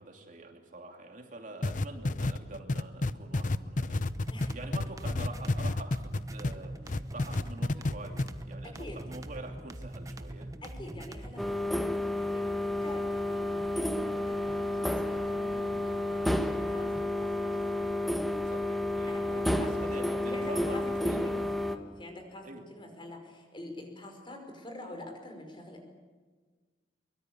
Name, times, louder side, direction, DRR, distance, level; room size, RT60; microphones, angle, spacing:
voice 1, 0.0-4.0 4.5-10.5 18.4-21.3 22.4-22.6, right 2 dB, 45° right, 3 dB, 2.8 m, -45 dB
sound 1, 1.6-6.6 6.9-7.9 8.2-8.3, left 2 dB, 45° left, 0.8 m, -29 dB
sound 2, 4.0-11.6, right 1 dB, 20° right, 1.2 m, -42 dB
voice 2, 10.6-14.6 14.9-17.5 19.1-19.7 20.3-25.8, left 1 dB, 30° left, 4 dB, 5.1 m, -46 dB
sound 3, 11.4-21.8, left 1 dB, ahead, 1.3 m, -31 dB
23.5 x 23.0 x 8.7 m, 1.4 s
head